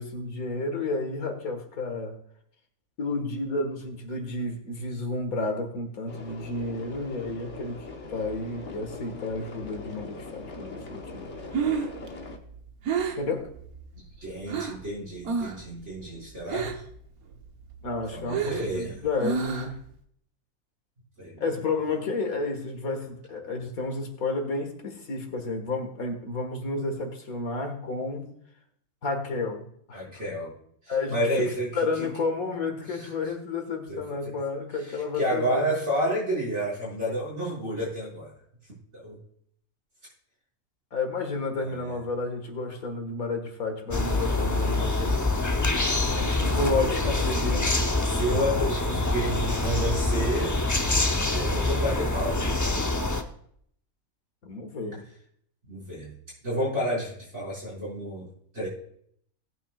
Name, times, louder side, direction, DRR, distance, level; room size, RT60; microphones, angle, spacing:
voice 1, 0.0-2.2 3.0-11.3 13.1-13.5 17.8-19.8 21.4-28.3 29.0-30.0 30.9-31.5 31.8-35.7 40.9-45.2 46.4-47.8 54.4-55.0, left 3 dB, 70° left, 4 dB, 2.2 m, -31 dB
sound 1, 6.1-12.4, left 3 dB, 55° left, 1.4 m, -41 dB
Breathing, 11.3-14.9 15.2-15.7 15.9-17.0 17.3-19.9, right 6 dB, 75° right, 1.5 m, -30 dB
voice 2, 13.9-16.8 18.1-18.9 21.2-21.4 29.9-30.5 30.8-32.1 32.8-33.1 33.9-34.0 34.8-38.3 38.6-39.2 41.6-42.0 46.0-47.3 48.0-50.6 51.1-52.5 55.6-56.1 56.4-58.3 58.5-58.7, equal, 50° right, -6 dB, 6.1 m, -31 dB
sound 2, 43.9-53.2, left 2 dB, 25° left, 0.4 m, -25 dB
18.5 x 9.1 x 2.4 m, 0.67 s
omnidirectional pair, 1.6 m